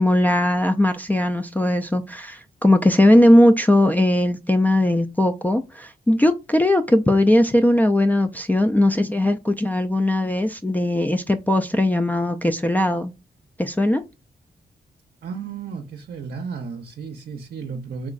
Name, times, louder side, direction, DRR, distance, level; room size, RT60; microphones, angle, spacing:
voice 1, 0.0-13.1 13.6-14.0, left 1 dB, 10° left, 0.3 m, -19 dB
voice 2, 15.2-18.1, right 5 dB, 70° right, 0.6 m, -33 dB
3.5 x 3.0 x 2.4 m
cardioid pair, 75°, 17 cm